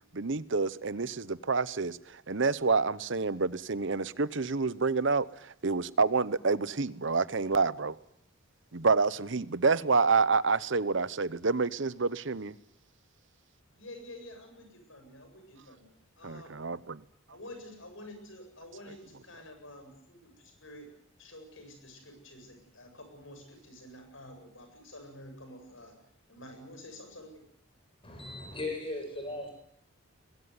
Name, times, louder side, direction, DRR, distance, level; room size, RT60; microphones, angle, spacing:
voice 1, 0.1-8.0 8.7-12.6 16.2-17.0, right 4 dB, 60° right, 0.9 m, -28 dB
voice 2, 13.7-16.5 17.3-20.9 21.2-25.9 26.3-27.3, left 1 dB, 70° left, 7.8 m, -49 dB
voice 3, 28.0-29.5, left 2 dB, 25° left, 7.6 m, -37 dB
22.0 x 21.5 x 9.6 m
head